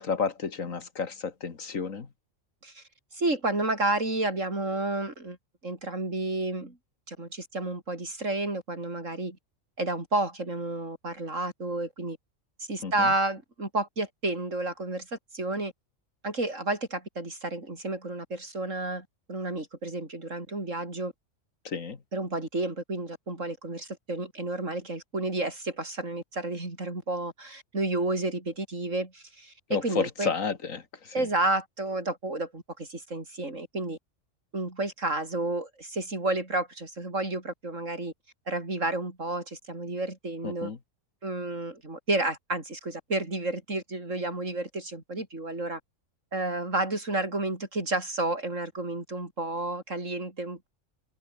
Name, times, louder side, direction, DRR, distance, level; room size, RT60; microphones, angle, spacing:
voice 1, 0.0-2.1 12.8-13.1 21.6-22.0 29.7-31.3 40.4-40.8, left 5 dB, 85° left, 2.3 m, -31 dB
voice 2, 3.1-5.4 5.6-6.8 7.1-9.4 9.8-12.2 12.7-15.7 16.2-21.1 22.1-30.3 31.1-34.0 34.5-38.1 38.5-40.7 41.2-45.8 46.3-50.7, right 2 dB, 70° right, 5.5 m, -31 dB
omnidirectional pair, 1.3 m